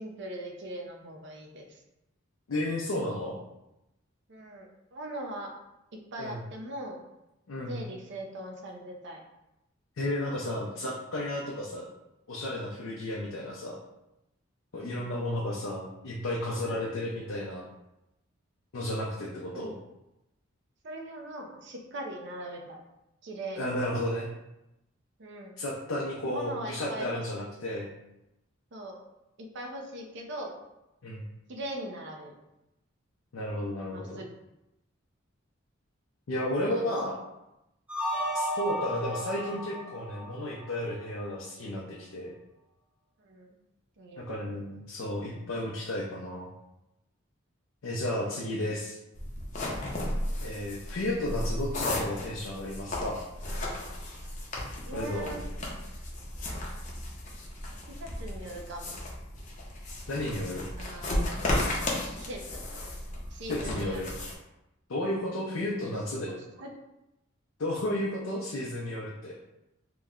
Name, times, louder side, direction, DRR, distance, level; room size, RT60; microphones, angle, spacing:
voice 1, 0.0-1.8 4.3-4.7 4.9-5.5 5.9-7.0 7.7-9.2 14.7-15.1 19.5-19.7 20.8-22.8 23.2-23.7 25.2-25.6 26.2-27.5 28.7-29.0 29.5-30.6 31.5-32.3 33.9-34.3 36.7-36.9 43.2-43.6 44.0-44.3 51.1-51.3 54.9-55.4 58.0-58.9 60.8-61.5 62.1-62.6 63.3-64.1 66.3-66.7, right 1 dB, 60° right, 2 dB, 0.5 m, -40 dB
voice 2, 2.5-3.4 6.2-6.4 7.5-7.8 10.0-11.9 12.3-13.8 14.7-17.7 18.7-19.7 23.6-24.3 25.6-27.9 31.0-31.3 33.3-34.2 36.3-37.2 38.3-42.3 44.2-46.5 47.8-49.0 50.4-53.2 54.9-55.4 60.1-60.7 63.5-64.1 64.9-66.4 67.6-69.4, left 1 dB, 85° left, -3 dB, 0.5 m, -33 dB
sound 1, 37.9-41.0, equal, 5° right, 0.4 m, -34 dB
sound 2, 49.1-64.3, left 1 dB, 40° left, 0.6 m, -34 dB
3.0 x 2.1 x 3.6 m, 0.90 s
head